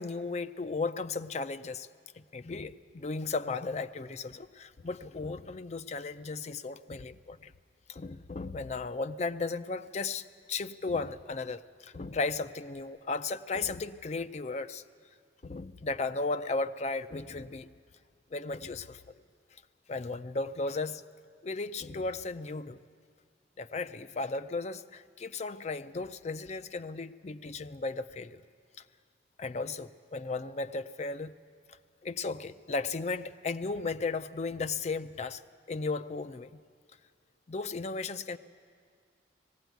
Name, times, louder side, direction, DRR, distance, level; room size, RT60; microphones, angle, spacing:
voice 1, 0.0-1.9 2.3-7.5 7.9-14.8 15.4-17.7 18.3-19.0 19.9-21.0 21.4-22.8 23.6-28.4 29.4-31.3 32.0-35.4 35.7-36.6 37.5-38.4, left 3 dB, 40° left, 12 dB, 0.5 m, -35 dB
19.5 x 16.0 x 9.2 m, 2.1 s
head